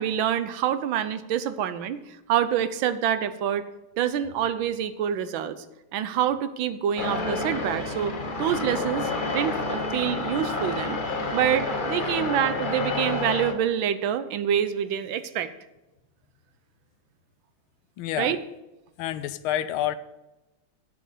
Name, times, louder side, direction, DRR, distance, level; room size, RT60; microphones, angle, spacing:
voice 1, 0.0-2.0 2.3-3.6 4.0-5.6 5.9-8.1 8.4-11.0 11.3-15.5 18.2-18.4, right 9 dB, 75° right, 12 dB, 1.4 m, -26 dB
sound 1, 7.0-13.5, left 3 dB, 40° left, 0.8 m, -29 dB
voice 2, 18.0-18.3 19.0-20.0, left 11 dB, 90° left, 13 dB, 1.5 m, -28 dB
11.0 x 7.9 x 5.0 m, 1.0 s
omnidirectional pair, 2.3 m